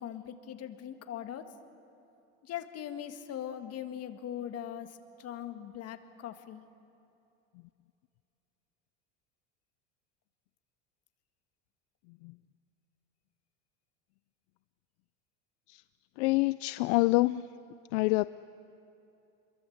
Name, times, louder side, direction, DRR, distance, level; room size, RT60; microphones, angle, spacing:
voice 1, 0.0-1.6 2.4-6.6, left 10 dB, 40° left, 8 dB, 1.8 m, -40 dB
voice 2, 16.2-17.5 17.9-18.3, left 21 dB, 70° left, 16 dB, 0.5 m, -26 dB
26.5 x 22.5 x 7.9 m, 2.8 s
supercardioid pair, 125°, 36 cm